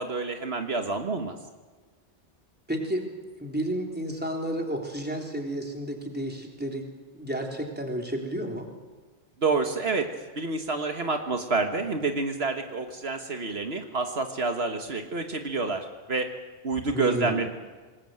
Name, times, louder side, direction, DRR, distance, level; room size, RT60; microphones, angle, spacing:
voice 1, 0.0-1.4 9.4-16.3 16.6-17.5, right 3 dB, 70° right, 5 dB, 1.8 m, -28 dB
voice 2, 2.7-3.0 3.4-6.9 7.1-8.7 16.9-17.4, right 1 dB, 10° right, 1 dB, 3.6 m, -31 dB
26.0 x 20.5 x 7.8 m, 1.4 s
omnidirectional pair, 1.1 m